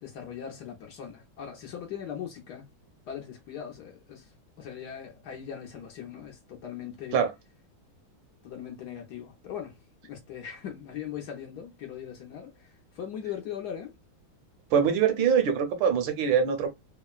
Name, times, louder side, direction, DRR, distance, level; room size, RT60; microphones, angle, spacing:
voice 1, 0.0-2.7 3.1-4.3 4.6-7.2 8.4-9.8 10.1-13.9, left 9 dB, 65° left, 1.1 m, -40 dB
voice 2, 14.7-16.7, right 7 dB, 75° right, 1.4 m, -23 dB
3.6 x 2.1 x 2.3 m
omnidirectional pair, 2.2 m